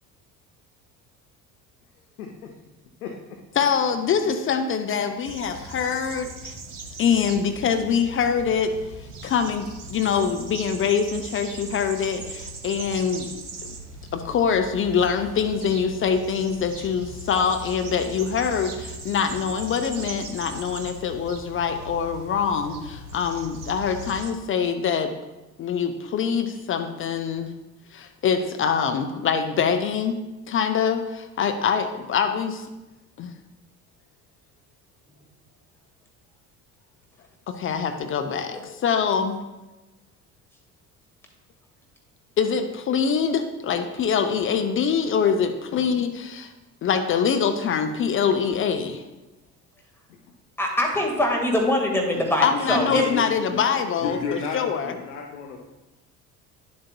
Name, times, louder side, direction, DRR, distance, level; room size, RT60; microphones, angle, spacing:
voice 1, 2.2-2.5 3.0-3.4 45.7-45.8 50.1-50.2 52.1-53.2 53.5-53.6 54.0-55.7, left 4 dB, 70° left, 2 dB, 0.8 m, -33 dB
voice 2, 3.6-6.5 7.0-8.7 9.0-13.3 13.6-13.7 14.1-25.1 25.6-27.5 27.9-30.2 30.5-32.7 33.2-33.3 37.5-39.4 42.4-46.5 46.8-49.0 52.4-54.9, left 6 dB, 30° left, 7 dB, 0.5 m, -24 dB
sound 1, 5.2-24.3, right 2 dB, 85° right, 0.7 m, -39 dB
voice 3, 50.6-53.1, left 1 dB, 5° left, 0 dB, 1.7 m, -23 dB
10.0 x 7.3 x 2.2 m, 1.1 s
figure-of-eight pair, 55°, 45 cm